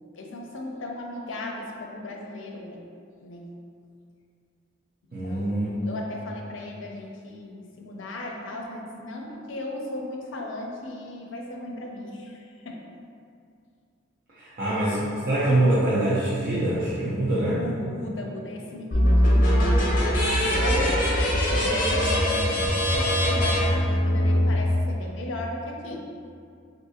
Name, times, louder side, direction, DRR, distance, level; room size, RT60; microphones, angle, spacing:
voice 1, 0.0-2.8 3.2-3.5 5.2-12.4 12.6-12.8 17.6-21.0 21.5-22.6 23.3-26.1, left 1 dB, 80° left, 0 dB, 0.5 m, -36 dB
voice 2, 5.1-5.7 14.4-17.6, right 1 dB, 50° right, -11 dB, 0.6 m, -24 dB
sound 1, 18.9-24.5, equal, 45° left, 0.7 m, -21 dB
3.6 x 2.6 x 2.7 m, 2.4 s
head